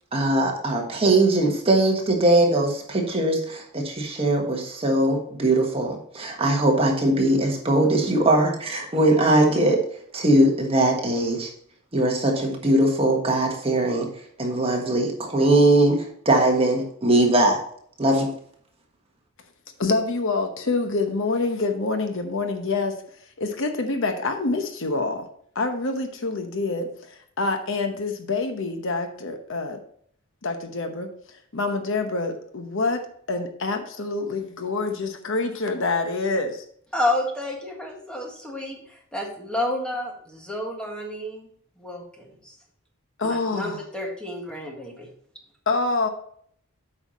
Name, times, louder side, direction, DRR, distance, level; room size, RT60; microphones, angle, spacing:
voice 1, 0.1-9.8 10.1-11.5 11.9-14.1 14.4-17.6 18.0-18.3, right 1 dB, 25° right, 1 dB, 1.4 m, -20 dB
voice 2, 19.8-23.0 23.4-25.3 25.5-29.8 30.4-36.6 43.2-43.8 45.7-46.1, left 3 dB, 60° left, 6 dB, 0.9 m, -26 dB
voice 3, 36.9-41.5 41.8-42.5 43.2-45.1, left 1 dB, 5° left, 0 dB, 1.7 m, -30 dB
8.2 x 5.6 x 4.2 m, 0.62 s
head